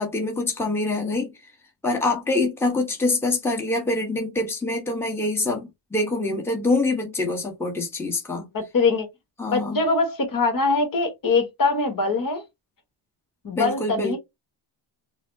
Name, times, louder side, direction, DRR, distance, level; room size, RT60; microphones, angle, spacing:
voice 1, 0.0-1.3 1.8-8.5 9.4-9.8 13.5-14.2, left 2 dB, 5° left, 1.0 m, -25 dB
voice 2, 8.5-9.1 9.5-12.4 13.4-14.2, left 3 dB, 45° left, 1.3 m, -23 dB
4.1 x 2.0 x 2.6 m
cardioid pair, 105°, 48 cm